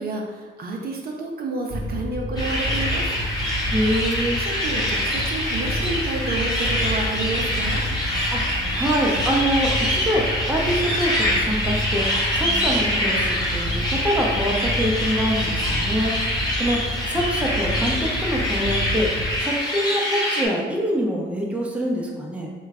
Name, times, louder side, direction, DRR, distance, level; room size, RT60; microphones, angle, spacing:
voice 1, 0.0-3.1 4.4-7.8, right 3 dB, 50° right, 0 dB, 0.5 m, -30 dB
sound 1, 1.7-19.4, left 1 dB, 35° right, 1.0 m, -29 dB
sound 2, 2.4-20.5, left 1 dB, 20° left, 0.9 m, -25 dB
voice 2, 3.7-4.4 8.3-10.2 10.5-12.0 12.3-16.1 16.6-16.8 17.1-19.1 19.4-22.5, equal, 5° right, -2 dB, 0.6 m, -25 dB
3.0 x 2.3 x 3.5 m, 1.4 s
cardioid pair, 90°, 20 cm